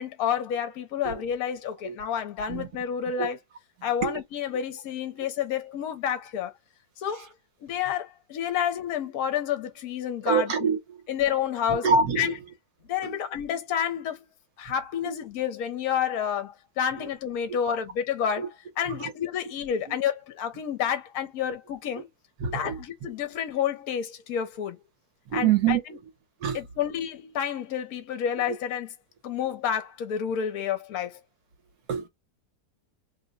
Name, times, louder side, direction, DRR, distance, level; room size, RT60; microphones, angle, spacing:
voice 1, 0.0-3.4 3.8-6.5 7.0-7.3 7.6-10.7 11.1-11.8 12.2-12.3 12.9-14.3 14.6-18.5 18.8-22.1 22.5-24.8 25.3-25.8 26.5-28.9 29.2-31.2, left 9 dB, 70° left, 1.1 m, -29 dB
voice 2, 10.3-11.0 11.7-12.4 13.0-13.2 15.0-15.1 17.0-17.1 17.7-17.8 18.4-18.5 18.8-19.1 19.9-20.0 22.4-23.1 25.3-25.8 26.4-26.6 28.5-28.6 31.9-32.1, right 6 dB, 70° right, 1.4 m, -26 dB
3.1 x 2.1 x 3.8 m
omnidirectional pair, 1.8 m